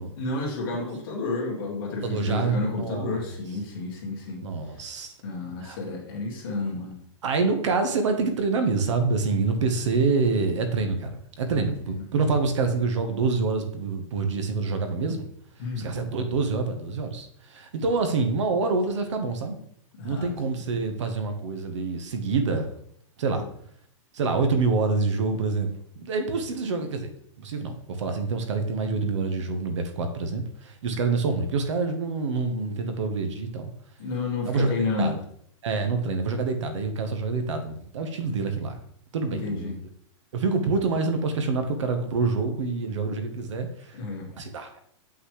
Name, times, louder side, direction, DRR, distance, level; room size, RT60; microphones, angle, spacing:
voice 1, 0.2-4.4 5.2-7.0 11.6-12.0 15.6-15.9 19.9-20.3 23.3-23.5 30.9-31.0 34.0-35.2 38.2-38.3 39.3-39.7 43.9-44.3, left 3 dB, 45° left, -2 dB, 2.1 m, -31 dB
voice 2, 2.0-3.3 4.4-5.1 5.6-5.8 7.2-15.2 15.8-19.6 20.0-22.7 23.2-23.5 24.1-25.7 26.0-27.1 27.4-33.7 34.4-34.7 35.0-35.2 35.6-38.8 39.1-39.8 40.3-44.0 44.4-44.8, right 4 dB, 65° right, 7 dB, 1.3 m, -26 dB
7.9 x 5.9 x 3.3 m, 0.67 s
supercardioid pair, 180°, 16 cm